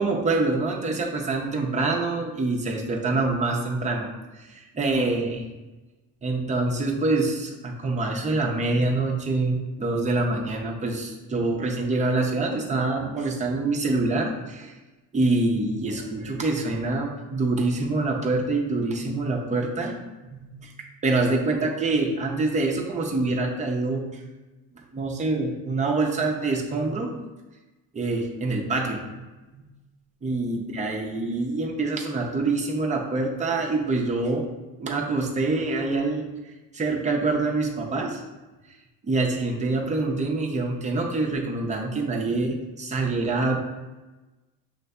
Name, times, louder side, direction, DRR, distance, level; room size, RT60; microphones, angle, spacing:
voice 1, 0.0-4.1 4.4-5.4 6.2-14.7 15.1-20.0 20.3-20.7 21.0-24.0 24.9-27.1 27.9-29.2 29.5-29.7 30.2-34.5 34.8-36.3 36.7-38.2 39.0-43.6, right 3 dB, 20° right, -1 dB, 0.5 m, -25 dB
6.3 x 2.6 x 2.2 m, 1.1 s
cardioid pair, 155°, 39 cm